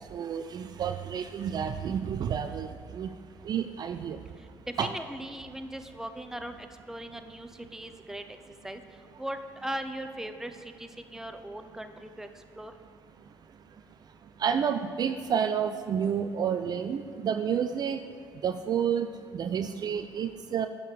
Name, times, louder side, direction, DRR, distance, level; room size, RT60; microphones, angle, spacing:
voice 1, 0.0-2.7 2.9-3.1 3.5-4.2 4.8-4.9 14.4-18.0 18.4-19.1 19.3-20.7, right 8 dB, 45° right, 9 dB, 0.4 m, -30 dB
voice 2, 4.8-8.2 8.6-8.8 9.2-12.3 12.6-12.7, right 1 dB, 5° right, 7 dB, 0.7 m, -39 dB
8.6 x 6.3 x 5.0 m, 2.2 s
hypercardioid pair, 55°, 9 cm